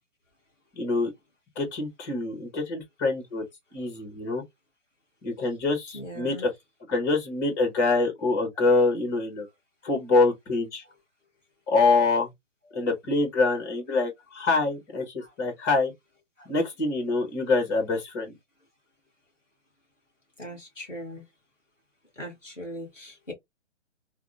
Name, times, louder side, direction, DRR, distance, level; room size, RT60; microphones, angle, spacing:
voice 1, 0.8-1.1 1.6-3.4 3.7-4.4 5.2-6.5 6.9-9.5 9.8-10.8 11.7-12.3 12.7-15.9 16.5-18.3, left 3 dB, 15° left, 0.8 m, -25 dB
voice 2, 5.9-6.5 10.8-10.9 12.7-12.9 15.2-15.3 16.4-16.5 20.4-21.2 22.1-23.3, equal, ahead, 0.4 m, -40 dB
4.7 x 2.1 x 2.4 m
figure-of-eight pair, 135°, 36 cm